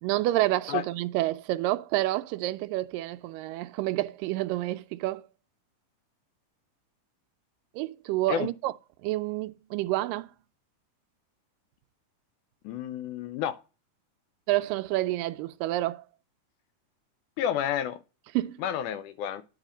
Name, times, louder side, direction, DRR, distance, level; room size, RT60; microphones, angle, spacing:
voice 1, 0.0-5.2 7.8-8.7 9.0-10.3 14.5-16.0 18.3-18.6, right 16 dB, 85° right, 2.2 m, -28 dB
voice 2, 12.7-13.6 17.4-18.0 18.6-19.4, left 10 dB, 80° left, 1.9 m, -30 dB
9.9 x 3.6 x 5.0 m
omnidirectional pair, 3.9 m